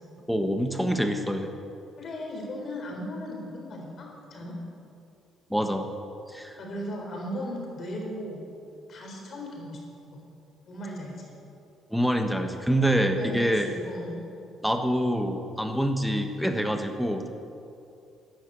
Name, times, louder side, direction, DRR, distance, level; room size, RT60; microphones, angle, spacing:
voice 1, 0.3-1.5 5.5-5.9 6.3-6.6 11.9-13.7 14.6-17.3, equal, ahead, 5 dB, 1.2 m, -26 dB
voice 2, 2.0-4.5 6.6-8.4 8.9-9.8 10.1-10.2 10.7-11.2 13.2-14.2, equal, 45° left, 0 dB, 3.9 m, -37 dB
13.0 x 10.0 x 8.1 m, 2.6 s
cardioid pair, 135°, 0 cm